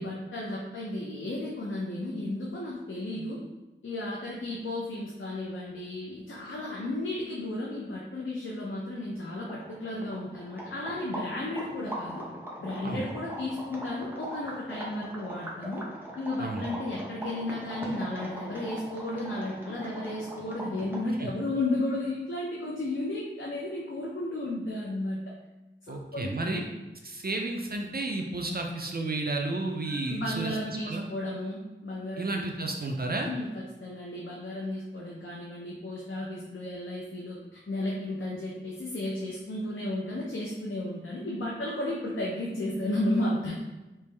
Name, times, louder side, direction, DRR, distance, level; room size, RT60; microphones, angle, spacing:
voice 1, 0.0-3.4 3.8-12.3 12.6-15.8 16.2-25.2 25.9-26.7 29.8-32.3 33.3-43.5, left 1 dB, 80° left, -3 dB, 0.5 m, -33 dB
sound 1, 9.4-21.2, right 1 dB, 10° right, 0.8 m, -40 dB
voice 2, 25.9-26.6 27.0-30.6 30.8-31.0 32.2-33.3, right 2 dB, 50° right, 2 dB, 0.4 m, -32 dB
3.3 x 3.0 x 3.3 m, 1.1 s
wide cardioid pair, 55°, 20 cm